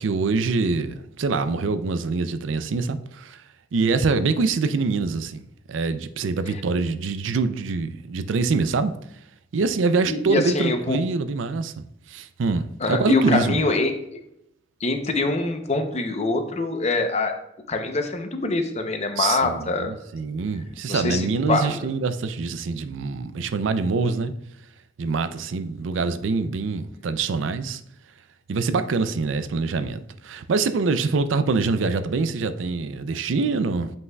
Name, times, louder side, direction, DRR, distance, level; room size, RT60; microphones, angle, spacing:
voice 1, 0.0-3.4 3.7-5.4 5.7-9.0 9.5-11.7 12.1-13.6 19.2-24.3 25.0-27.8 28.5-33.9, right 4 dB, 80° right, 0.4 m, -25 dB
voice 2, 10.0-11.0 12.8-13.9 14.8-17.3 17.7-19.9 20.9-21.8, left 3 dB, 35° left, 0.7 m, -24 dB
8.0 x 5.4 x 2.3 m
head